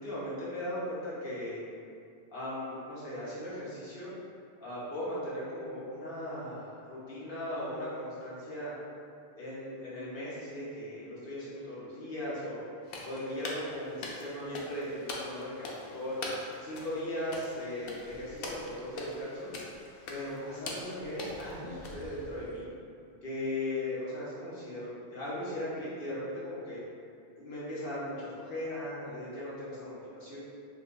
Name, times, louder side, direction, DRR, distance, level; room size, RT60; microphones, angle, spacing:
voice 1, 0.0-1.6 2.3-4.1 4.6-8.7 9.4-12.6 13.0-16.2 16.6-19.5 20.1-22.7 23.2-26.8 27.3-30.4, left 1 dB, 45° left, -9 dB, 1.2 m, -38 dB
sound 1, 12.8-22.6, left 2 dB, 60° left, 0.6 m, -43 dB
5.0 x 2.6 x 2.5 m, 2.5 s
omnidirectional pair, 1.4 m